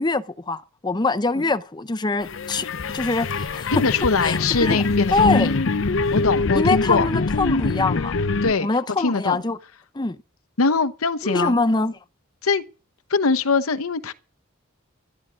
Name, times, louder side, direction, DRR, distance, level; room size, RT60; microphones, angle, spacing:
voice 1, 0.0-2.7 2.9-3.7 4.2-4.8 5.1-5.5 6.5-8.1 8.6-9.6 9.9-10.2 11.2-11.9, left 3 dB, 20° left, 0.6 m, -23 dB
sound 1, 2.2-8.5, left 3 dB, 60° left, 0.7 m, -24 dB
voice 2, 3.7-5.6 6.1-7.1 8.4-8.7 9.0-9.4 10.6-11.6 12.4-12.6 13.1-14.1, left 4 dB, 90° left, 0.9 m, -22 dB
12.5 x 11.5 x 6.2 m
head